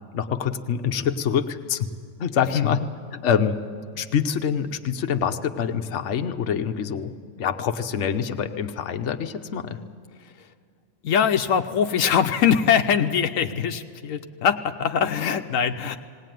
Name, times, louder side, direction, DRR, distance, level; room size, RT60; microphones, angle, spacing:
voice 1, 0.1-1.9 2.2-3.6 3.9-9.8, left 7 dB, 65° left, 7 dB, 1.1 m, -26 dB
voice 2, 11.0-16.0, left 8 dB, 85° left, 7 dB, 1.1 m, -22 dB
19.0 x 18.5 x 9.2 m, 2.2 s
omnidirectional pair, 1.3 m